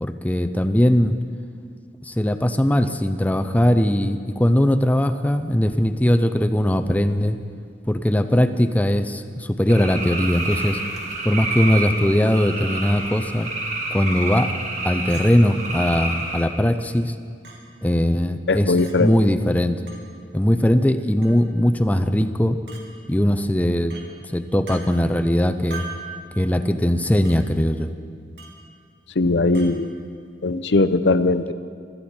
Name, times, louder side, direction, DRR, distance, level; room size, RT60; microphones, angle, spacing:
voice 1, 0.0-1.2 2.0-7.4 7.9-10.8 11.2-13.5 13.9-14.5 14.8-17.1 17.8-19.8 20.3-22.6 23.1-23.9 24.3-25.8 26.4-27.9, equal, 10° left, 8 dB, 0.5 m, -20 dB
sound 1, 9.7-16.4, right 2 dB, 40° right, 2.0 m, -29 dB
Chink clink, 15.1-15.3 16.2-16.3 17.4-17.6 18.8-18.9 19.9-20.0 21.2-21.4 22.7-22.8 23.9-24.1 24.7-24.8 25.7-26.1 27.2-27.4 28.4-28.6 29.5-29.7, right 3 dB, 70° right, 2.5 m, -39 dB
voice 2, 18.5-19.1 29.2-29.9 30.4-31.5, left 3 dB, 80° left, 12 dB, 0.7 m, -19 dB
24.5 x 13.5 x 4.4 m, 2.2 s
head